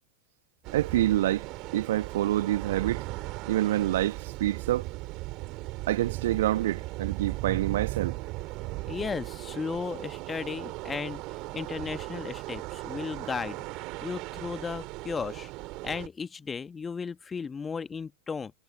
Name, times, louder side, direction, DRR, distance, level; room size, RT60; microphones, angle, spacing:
sound 1, 0.6-16.1, right 22 dB, 40° right, 3.7 m, -37 dB
voice 1, 0.7-3.1 3.5-4.9 5.9-8.2, right 14 dB, 55° right, 1.7 m, -27 dB
voice 2, 8.7-13.6 14.0-15.5 15.8-18.5, left 5 dB, 15° left, 1.8 m, -35 dB
figure-of-eight pair, 90°, 0 cm